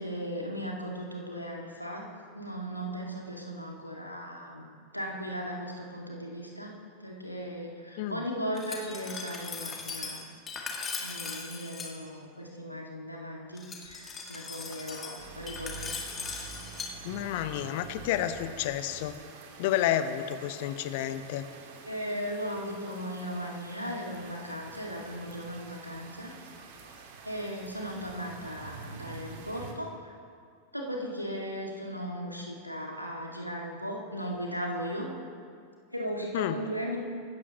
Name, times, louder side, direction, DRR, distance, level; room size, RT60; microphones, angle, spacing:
voice 1, 0.0-2.1 2.3-4.7 4.9-6.7 7.0-10.3 11.0-15.9 21.9-26.3 27.2-30.1 30.7-35.1 35.9-37.0, equal, 90° left, -1 dB, 2.1 m, -37 dB
Glass, 8.6-11.9 13.6-16.9, left 4 dB, 20° left, 2.2 m, -39 dB
sound 1, 15.2-29.7, right 5 dB, 55° right, 1.8 m, -47 dB
voice 2, 17.0-19.2 19.6-21.5 36.3-36.6, left 11 dB, 50° left, 11 dB, 0.8 m, -30 dB
24.5 x 13.5 x 3.0 m, 2.3 s
figure-of-eight pair, 90°, 0 cm